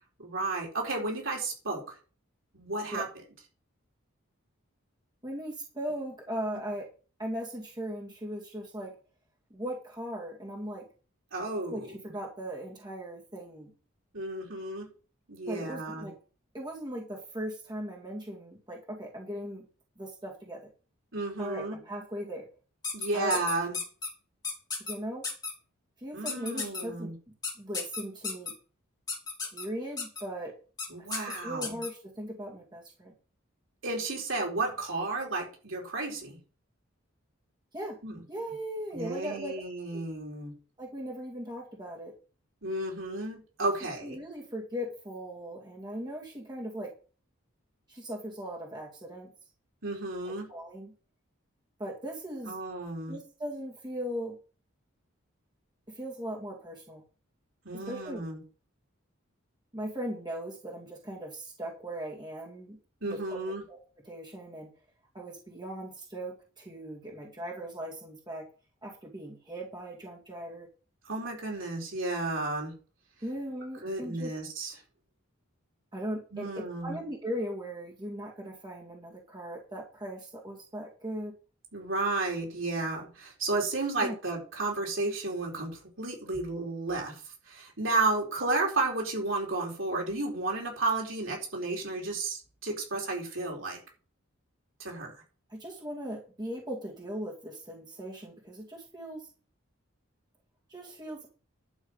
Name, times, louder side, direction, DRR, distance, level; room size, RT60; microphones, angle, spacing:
voice 1, 0.2-2.0 2.5-3.1 11.3-11.9 14.1-14.9 15.3-16.1 21.1-21.8 22.9-23.8 26.1-27.1 30.9-31.8 33.8-36.4 38.0-38.2 38.9-40.5 42.6-44.2 49.8-50.5 52.5-53.2 57.6-58.4 63.0-63.6 71.0-72.7 73.8-74.7 76.3-76.9 81.7-93.8 94.8-95.2, right 2 dB, 70° right, -1 dB, 4.6 m, -32 dB
voice 2, 5.2-6.9 7.2-8.9 9.5-10.8 11.7-13.7 15.5-16.1 16.5-19.7 20.0-20.6 21.4-22.5 23.1-23.4 24.8-25.2 26.0-27.1 27.6-28.5 29.4-30.5 31.0-33.1 37.7-38.0 38.3-39.6 39.9-40.0 40.8-42.1 44.0-46.9 47.9-49.3 50.2-50.9 51.8-52.6 53.1-54.4 55.9-57.0 57.7-58.2 59.7-62.8 63.0-63.4 63.7-64.7 65.1-68.4 68.8-70.7 73.2-74.3 75.9-81.4 84.0-84.2 95.5-99.3 100.7-101.3, equal, 20° right, -2 dB, 2.4 m, -38 dB
sound 1, 22.8-24.1 24.4-24.9 25.2-25.5 26.3-26.8 27.4-28.5 29.1-29.7 30.0-30.2 30.8-30.9 31.1-31.9, left 4 dB, 20° left, 2.7 m, -33 dB
11.5 x 7.6 x 5.7 m, 0.37 s
head